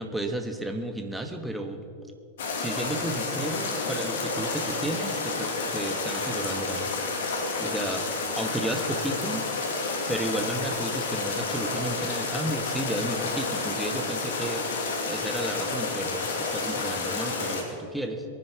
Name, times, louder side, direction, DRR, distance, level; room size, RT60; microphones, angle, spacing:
voice 1, 0.0-1.8 2.6-6.9 7.6-8.1 8.4-9.4 10.1-14.7 15.1-18.2, right 1 dB, 5° right, 5 dB, 1.5 m, -33 dB
sound 1, 2.4-17.6, left 3 dB, 65° left, 2.5 m, -30 dB
22.0 x 9.8 x 4.8 m, 2.4 s
figure-of-eight pair, 95°, 0 cm